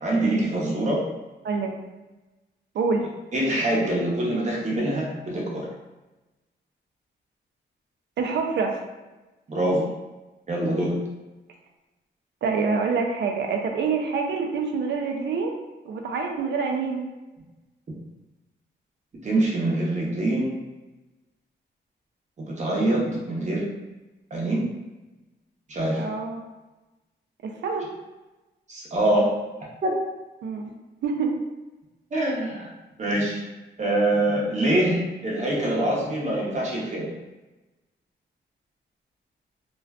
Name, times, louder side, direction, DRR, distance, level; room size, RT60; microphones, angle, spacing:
voice 1, 0.0-1.0 3.3-5.7 9.5-9.8 10.5-11.0 19.2-20.5 22.4-23.7 24.3-24.7 25.7-26.0 28.7-29.3 29.8-29.9 32.1-32.7 33.0-33.4 33.8-37.1, right 1 dB, 40° right, -3 dB, 0.7 m, -24 dB
voice 2, 1.4-1.8 2.7-3.1 8.2-8.8 12.4-15.6 15.8-17.0 25.9-26.4 27.4-27.9 30.4-30.7 31.0-31.4, right 4 dB, 70° right, 3 dB, 0.4 m, -26 dB
2.4 x 2.2 x 2.3 m, 1.1 s
cardioid pair, 95°, 19 cm